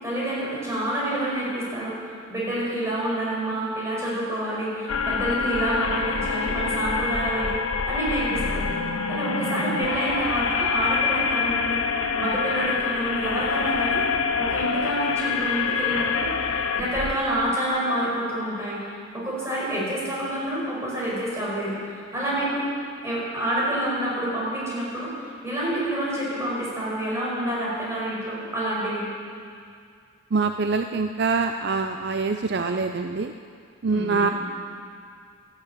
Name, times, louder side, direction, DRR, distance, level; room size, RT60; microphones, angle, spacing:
voice 1, 0.0-1.9 2.3-7.6 7.8-8.7 9.1-11.8 12.2-14.0 14.4-16.5 16.7-18.8 19.1-22.6 23.0-25.1 25.4-29.1 33.9-34.3, right 1 dB, 15° right, -6 dB, 5.3 m, -28 dB
sound 1, 4.9-17.1, left 5 dB, 85° left, 0.8 m, -26 dB
voice 2, 30.3-33.3 33.8-34.3, right 4 dB, 55° right, 6 dB, 0.5 m, -24 dB
13.5 x 11.5 x 8.6 m, 2.3 s
head